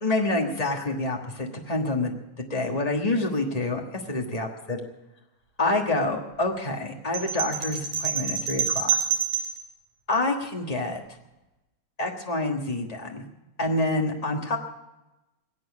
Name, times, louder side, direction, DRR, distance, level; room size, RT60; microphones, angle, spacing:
voice 1, 0.0-2.1 2.4-3.8 4.1-4.8 5.6-9.0 10.1-11.0 12.0-13.2 13.6-14.6, left 2 dB, 60° left, 1 dB, 0.4 m, -27 dB
sound 1, 7.1-9.6, right 7 dB, 75° right, 4.8 m, -27 dB
21.5 x 8.8 x 7.2 m, 0.98 s
omnidirectional pair, 3.4 m